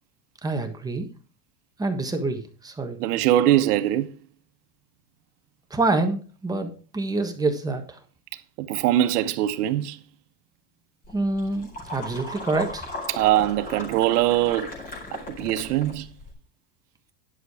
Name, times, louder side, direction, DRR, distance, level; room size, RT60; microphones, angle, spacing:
voice 1, 0.4-1.1 1.8-3.0 5.7-7.8 11.1-12.9, right 2 dB, 10° right, 1.3 m, -26 dB
voice 2, 3.0-4.1 8.6-10.0 13.1-14.7 15.1-16.1, right 13 dB, 90° right, 1.1 m, -22 dB
sound 1, 11.0-16.3, left 2 dB, 20° left, 4.7 m, -38 dB
11.0 x 6.8 x 4.8 m
supercardioid pair, 150°, 45 cm